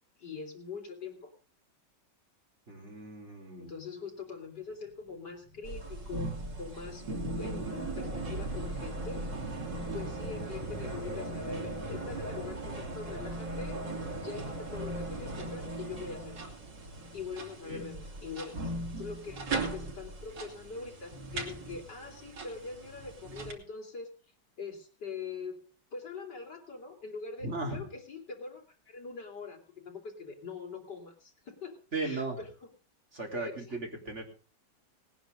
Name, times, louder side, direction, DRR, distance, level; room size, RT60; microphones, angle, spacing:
voice 1, 0.2-1.3 3.6-6.3 6.6-7.0 7.4-9.2 9.9-13.8 14.2-16.4 17.1-18.6 19.0-24.1 24.6-25.6 25.9-31.7 32.0-32.5 33.4-33.8, left 4 dB, 75° left, 1 dB, 4.1 m, -43 dB
voice 2, 2.7-3.7 17.7-17.9 27.4-27.8 31.9-32.4 33.1-34.2, right 3 dB, 40° right, 1 dB, 4.0 m, -36 dB
sound 1, 4.5-11.0, right 1 dB, 15° left, 7.1 m, -48 dB
sound 2, 5.6-23.5, right 2 dB, 85° right, 3.8 m, -38 dB
19.0 x 10.0 x 5.1 m, 0.38 s
omnidirectional pair, 1.9 m